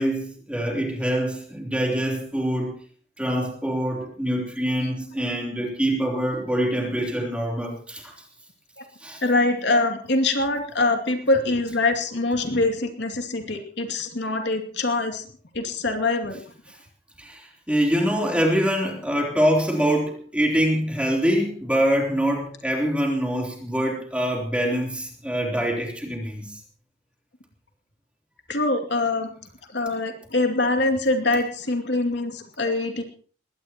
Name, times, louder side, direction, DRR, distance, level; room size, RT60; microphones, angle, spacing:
voice 1, 0.0-2.8 3.2-8.2 9.0-9.2 17.2-26.6, equal, 5° right, 0 dB, 3.4 m, -24 dB
voice 2, 9.2-15.3 15.5-16.4 28.5-29.3 29.7-33.0, left 2 dB, 70° left, 4 dB, 2.6 m, -24 dB
21.0 x 18.0 x 3.0 m, 0.44 s
head